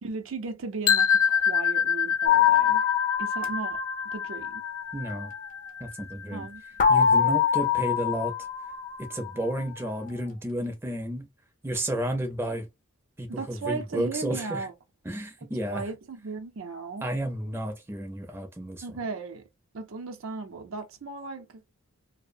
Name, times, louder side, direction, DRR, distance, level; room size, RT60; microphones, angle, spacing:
voice 1, 0.0-2.8 3.2-3.8 4.1-4.6 6.3-6.6 13.3-14.7 15.7-17.1 18.8-19.5 19.7-21.6, right 4 dB, 70° right, 0.5 m, -36 dB
sound 1, 0.9-6.8, left 7 dB, 90° left, 0.5 m, -27 dB
sound 2, 2.3-5.1 6.8-9.6, left 8 dB, 40° left, 0.5 m, -25 dB
voice 2, 4.9-5.3 5.8-6.5 6.9-8.3 9.0-11.3 11.6-12.7 13.2-14.7 15.1-15.8 17.0-18.8, right 1 dB, 10° right, 0.5 m, -32 dB
2.7 x 2.0 x 2.5 m
head